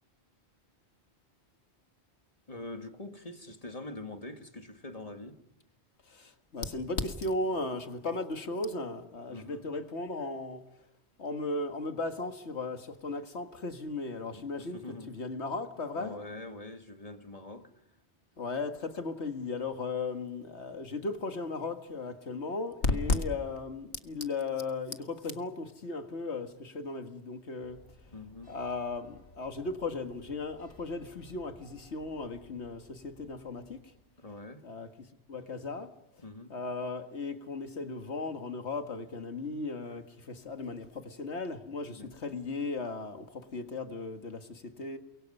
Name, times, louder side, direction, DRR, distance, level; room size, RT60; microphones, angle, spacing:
voice 1, 2.5-5.4 9.3-9.7 14.3-15.1 15.9-17.7 22.9-23.2 28.1-28.6 34.2-34.6 36.2-36.5 42.0-42.1, left 2 dB, 35° left, 1.8 m, -44 dB
voice 2, 6.1-10.7 11.2-16.1 18.4-27.9 28.5-33.9 34.6-35.9 36.5-45.0, left 3 dB, 90° left, 2.1 m, -36 dB
sound 1, 27.6-34.1, left 2 dB, 55° left, 6.0 m, -58 dB
30.0 x 23.0 x 5.5 m
omnidirectional pair, 1.1 m